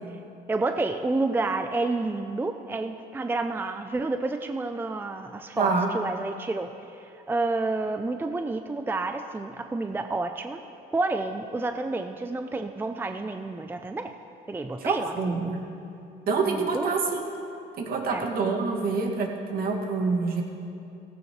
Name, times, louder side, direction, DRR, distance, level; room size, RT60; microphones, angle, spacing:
voice 1, 0.5-10.6 10.9-14.1 14.5-15.5 16.4-16.9 18.1-18.3, right 3 dB, 10° right, 7 dB, 0.5 m, -30 dB
voice 2, 5.6-5.9 14.8-15.6 16.3-17.2 17.8-20.4, right 4 dB, 60° right, 0 dB, 2.0 m, -26 dB
16.5 x 15.5 x 3.2 m, 2.8 s
cardioid pair, 110°, 17 cm